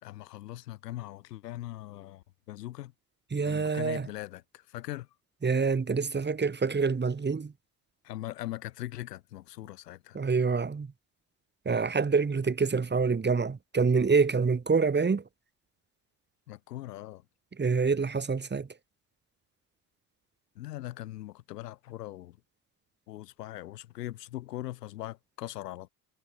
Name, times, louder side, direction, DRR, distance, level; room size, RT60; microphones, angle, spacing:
voice 1, 0.0-2.9 3.4-5.1 8.0-10.2 16.5-17.2 20.6-22.4 23.1-25.9, left 15 dB, 80° left, 3.6 m, -40 dB
voice 2, 3.3-4.1 5.4-7.5 10.1-10.9 11.6-15.2 17.6-18.7, right 5 dB, 20° right, 2.7 m, -26 dB
hypercardioid pair, 65°, 47 cm